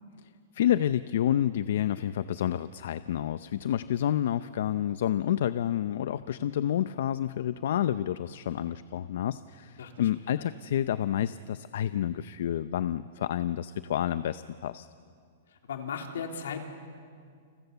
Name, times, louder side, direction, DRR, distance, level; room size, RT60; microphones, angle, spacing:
voice 1, 0.2-14.9, left 11 dB, 65° left, 13 dB, 0.6 m, -29 dB
voice 2, 15.6-16.7, left 6 dB, 85° left, 3 dB, 3.5 m, -36 dB
29.5 x 26.0 x 7.0 m, 2.2 s
hypercardioid pair, 155°, 0 cm